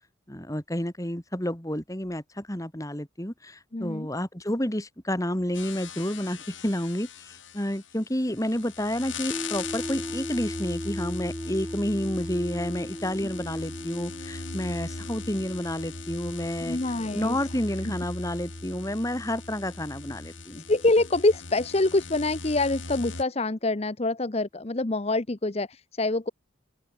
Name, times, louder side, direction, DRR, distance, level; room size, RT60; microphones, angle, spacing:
voice 1, 0.3-16.8 17.1-20.6, left 1 dB, 15° left, 2.3 m, -30 dB
voice 2, 3.7-4.1 16.6-17.4 17.8-17.9 20.6-26.3, left 2 dB, 30° left, 0.8 m, -25 dB
sound 1, 5.5-23.2, left 4 dB, 75° left, 5.8 m, -40 dB
sound 2, 9.3-21.4, equal, 5° right, 1.5 m, -40 dB
open air
head